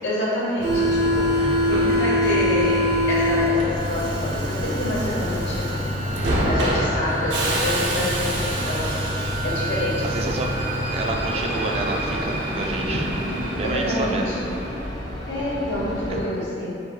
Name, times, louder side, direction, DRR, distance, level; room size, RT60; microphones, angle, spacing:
voice 1, 0.0-5.7 6.4-8.9 9.4-10.4 13.6-14.4 15.3-16.8, left 1 dB, 75° left, -6 dB, 1.0 m, -27 dB
Subway metro underground, 0.6-14.9, equal, 80° right, 0.7 m, -25 dB
sound 1, 0.7-16.2, left 1 dB, 20° left, 0.5 m, -33 dB
voice 2, 10.1-10.5 10.9-13.1 13.6-14.3 16.1-16.2, right 2 dB, 35° right, 1 dB, 0.3 m, -29 dB
4.8 x 2.2 x 3.9 m, 2.5 s
head